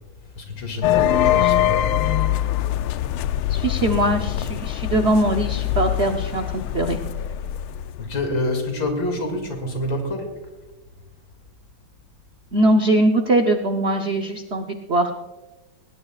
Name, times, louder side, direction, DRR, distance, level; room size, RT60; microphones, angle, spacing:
voice 1, 0.3-1.9 8.0-10.5, left 2 dB, 65° left, 4 dB, 3.1 m, -27 dB
sound 1, 0.8-8.3, left 12 dB, 90° left, 1.5 m, -23 dB
voice 2, 3.5-7.0 12.5-15.1, right 1 dB, 60° right, 4 dB, 0.6 m, -21 dB
20.0 x 18.5 x 2.4 m, 1.2 s
omnidirectional pair, 2.3 m